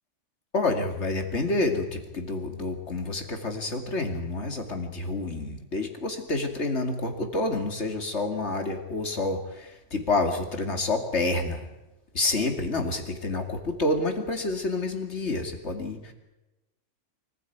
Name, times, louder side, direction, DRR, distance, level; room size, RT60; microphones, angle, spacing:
voice 1, 0.5-11.7 12.1-16.1, left 2 dB, 65° left, 6 dB, 2.8 m, -28 dB
24.5 x 15.0 x 9.3 m, 1.0 s
omnidirectional pair, 1.3 m